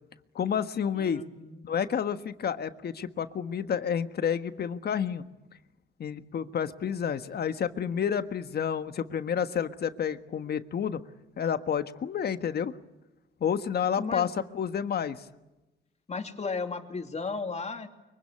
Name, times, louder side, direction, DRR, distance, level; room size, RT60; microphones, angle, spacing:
voice 1, 0.3-1.2 1.6-5.2 6.0-11.0 11.4-12.7 13.4-15.2, left 8 dB, 55° left, 10 dB, 1.5 m, -30 dB
voice 2, 0.9-1.6 14.0-14.3 16.1-17.9, left 4 dB, 35° left, 5 dB, 2.9 m, -35 dB
24.0 x 23.5 x 9.8 m, 1.0 s
cardioid pair, 90°, 20 cm